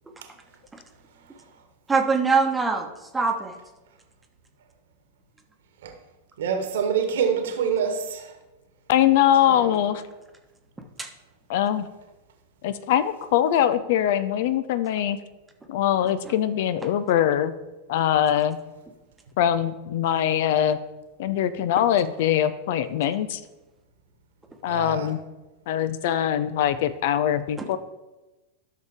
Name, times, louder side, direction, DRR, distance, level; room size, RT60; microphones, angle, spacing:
voice 1, 1.9-3.6 10.8-11.1 16.2-16.3 16.8-16.9 27.6-27.7, right 4 dB, 10° right, 4 dB, 1.1 m, -24 dB
voice 2, 6.4-8.3 9.5-9.8 24.7-25.1, right 7 dB, 60° right, 5 dB, 1.3 m, -26 dB
voice 3, 8.9-10.0 11.5-11.9 12.6-15.2 15.7-17.5 17.9-18.6 19.4-20.8 21.2-23.4 24.6-25.2 25.7-27.8, left 10 dB, 50° left, 14 dB, 0.5 m, -22 dB
12.0 x 6.6 x 3.6 m, 1.1 s
figure-of-eight pair, 90°, 0 cm